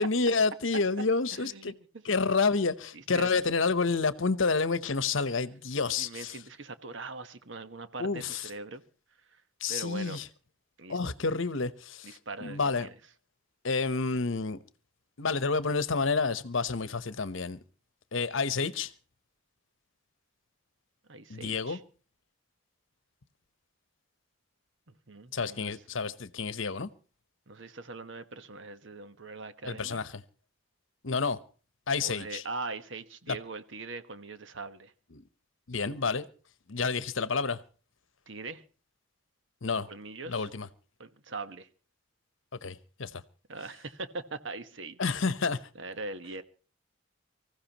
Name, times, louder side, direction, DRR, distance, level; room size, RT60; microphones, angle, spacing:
voice 1, 0.0-1.7 2.0-6.4 8.0-8.4 9.6-10.3 10.9-12.9 13.6-14.6 15.2-17.6 18.1-18.9 21.3-21.8 25.3-26.9 29.6-30.2 31.0-31.4 31.9-32.4 33.3-33.4 35.1-35.2 35.7-36.2 36.7-37.6 39.6-39.9 40.3-40.7 42.6-43.2 45.0-45.6, left 4 dB, 70° left, 0.9 m, -29 dB
voice 2, 1.3-2.0 2.9-3.3 6.0-8.8 9.3-9.4 9.7-10.2 10.8-11.1 12.0-12.9 21.1-21.8 25.1-25.7 27.5-30.0 32.0-34.9 38.3-38.6 39.9-40.5 41.0-41.7 43.5-45.1 45.7-46.4, right 3 dB, 65° right, 1.2 m, -41 dB
24.5 x 15.5 x 3.0 m
head